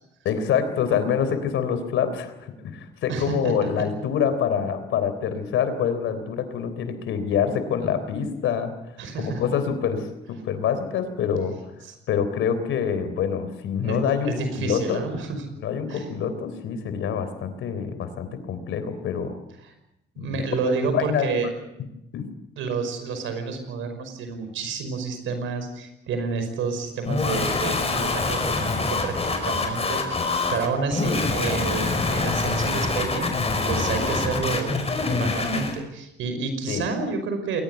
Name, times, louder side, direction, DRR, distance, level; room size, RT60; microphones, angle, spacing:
voice 1, 0.2-8.7 9.2-11.6 12.1-15.1 15.6-19.3 20.2-20.4 20.9-21.4 22.1-22.3 36.7-36.9, left 7 dB, 80° left, 11 dB, 3.7 m, -26 dB
voice 2, 3.1-3.7 9.0-9.4 11.8-11.9 13.8-14.0 14.2-15.4 15.9-16.1 20.1-21.5 22.6-37.6, right 4 dB, 85° right, 8 dB, 5.6 m, -30 dB
sound 1, 27.1-35.8, left 3 dB, 30° left, 5.2 m, -25 dB
21.5 x 19.0 x 8.2 m, 0.87 s
cardioid pair, 90°, 20 cm